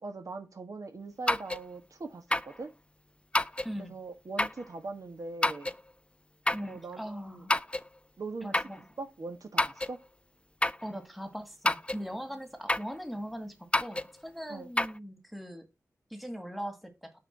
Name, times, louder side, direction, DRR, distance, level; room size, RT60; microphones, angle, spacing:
voice 1, 0.0-2.7 3.8-5.7 6.7-7.4 8.2-8.5 9.0-10.0 14.5-14.7, right 3 dB, 70° right, 1.4 m, -41 dB
sound 1, 1.3-1.6 2.3-2.6 3.3-3.7 4.4-4.6 5.4-5.8 6.5-6.7 7.5-7.9 8.5-8.8 9.6-10.0 10.6-10.9 11.6-12.0 12.7-12.9 13.7-14.1 14.8-14.9, left 1 dB, 20° left, 0.4 m, -28 dB
voice 2, 3.6-4.0 6.5-7.6 8.4-8.8 10.8-15.7 16.1-17.1, equal, ahead, 1.9 m, -40 dB
6.0 x 4.7 x 5.8 m
cardioid pair, 50°, 6 cm